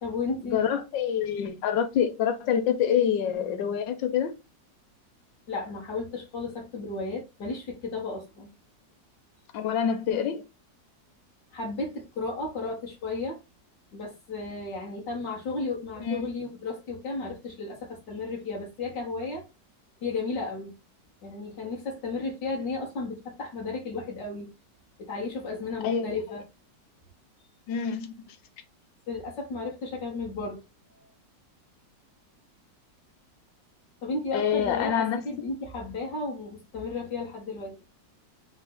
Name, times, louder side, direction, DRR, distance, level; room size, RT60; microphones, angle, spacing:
voice 1, 0.0-0.6 5.5-8.5 11.5-13.4 13.9-19.4 20.0-20.7 21.2-24.5 25.0-26.4 29.1-30.6 31.0-31.1 34.0-37.8, left 3 dB, 70° left, 1.7 m, -34 dB
voice 2, 0.5-4.3 9.5-10.4 16.0-16.2 25.8-26.2 27.7-28.4 34.3-35.2, left 8 dB, 90° left, 1.4 m, -26 dB
3.7 x 3.4 x 4.1 m
omnidirectional pair, 1.9 m